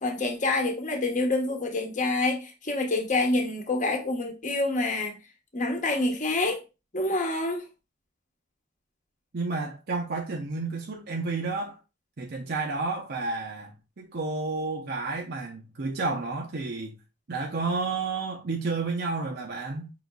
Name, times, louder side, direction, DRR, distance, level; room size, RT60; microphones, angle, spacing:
voice 1, 0.0-5.2 5.5-6.6 6.9-7.6, left 2 dB, 40° left, 1.1 m, -27 dB
voice 2, 9.3-11.8 12.2-16.9 17.3-19.9, right 3 dB, 55° right, 0.7 m, -31 dB
5.5 x 3.9 x 2.2 m
head